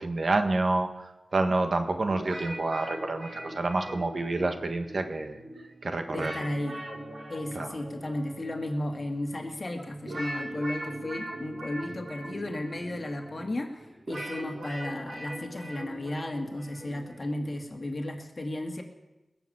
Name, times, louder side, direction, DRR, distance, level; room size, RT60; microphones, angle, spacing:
voice 1, 0.0-5.4 5.8-6.5 7.5-7.7, right 2 dB, 60° right, 6 dB, 1.5 m, -28 dB
sound 1, 2.1-18.0, right 1 dB, 80° right, 5.0 m, -41 dB
voice 2, 6.1-6.8 7.3-18.8, left 1 dB, 45° left, 3 dB, 2.1 m, -34 dB
20.5 x 7.1 x 8.8 m, 1.0 s
wide cardioid pair, 65°, 0 cm